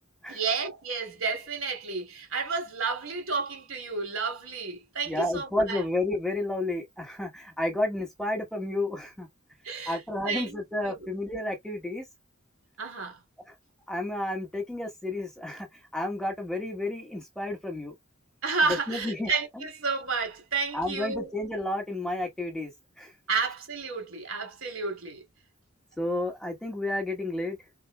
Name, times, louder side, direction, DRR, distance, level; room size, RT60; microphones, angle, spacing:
voice 1, 0.3-5.8 9.6-10.6 10.9-11.1 12.8-13.2 18.4-21.3 23.3-25.2, right 4 dB, 70° right, 2.6 m, -31 dB
voice 2, 5.1-9.3 9.9-12.0 13.5-13.6 13.9-15.7 15.9-17.9 18.9-19.6 20.7-22.7 23.0-23.1 26.0-27.6, left 1 dB, 5° left, 1.4 m, -31 dB
4.3 x 3.8 x 2.3 m
head